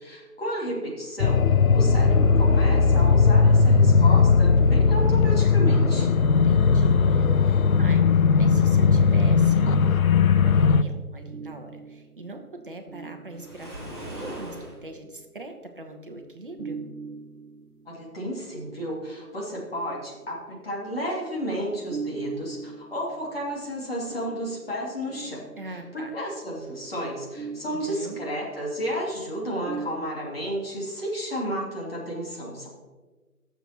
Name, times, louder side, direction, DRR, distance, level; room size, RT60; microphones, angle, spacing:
voice 1, 0.0-1.4 1.7-6.1 17.9-32.7, equal, 40° left, -4 dB, 2.8 m, -32 dB
sound 1, 1.2-10.8, left 5 dB, 65° left, 0.5 m, -18 dB
voice 2, 6.3-16.8 25.6-26.2 27.7-28.2, right 2 dB, 35° right, 4 dB, 1.0 m, -41 dB
sound 2, 11.3-15.9 16.6-19.2 19.8-21.2 21.9-30.0, right 5 dB, 65° right, 1.2 m, -42 dB
Waves surf, 13.3-14.8, equal, 15° left, 1.0 m, -39 dB
18.0 x 7.0 x 3.0 m, 1.3 s
figure-of-eight pair, 165°, 46 cm